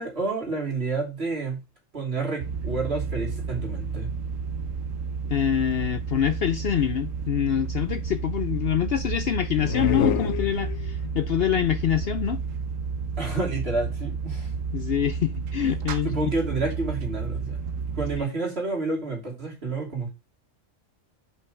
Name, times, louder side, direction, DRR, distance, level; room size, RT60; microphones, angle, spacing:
voice 1, 0.0-1.6 1.9-4.1 13.2-14.5 16.0-17.6 18.0-20.1, right 3 dB, 50° right, 3.2 m, -29 dB
sound 1, 2.4-18.2, right 5 dB, 85° right, 1.2 m, -31 dB
voice 2, 5.3-12.4 14.7-16.3 18.2-18.3, left 10 dB, 60° left, 0.7 m, -25 dB
sound 2, 9.6-11.2, left 8 dB, 90° left, 1.1 m, -27 dB
5.8 x 5.4 x 6.3 m
omnidirectional pair, 1.3 m